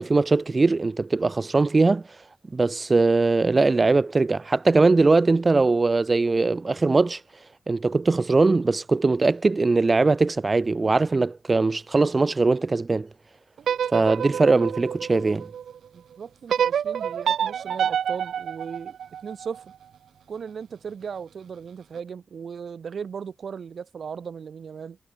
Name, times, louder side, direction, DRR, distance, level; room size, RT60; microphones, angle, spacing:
voice 1, 0.0-2.0 2.5-7.2 7.7-13.1 13.9-15.5, right 3 dB, 30° right, 0.5 m, -21 dB
sound 1, 13.6-15.8 16.5-19.6, right 8 dB, 90° right, 1.2 m, -27 dB
voice 2, 15.9-19.0 19.2-19.7 20.3-25.0, right 6 dB, 65° right, 1.5 m, -37 dB
wide cardioid pair, 105°, 0 cm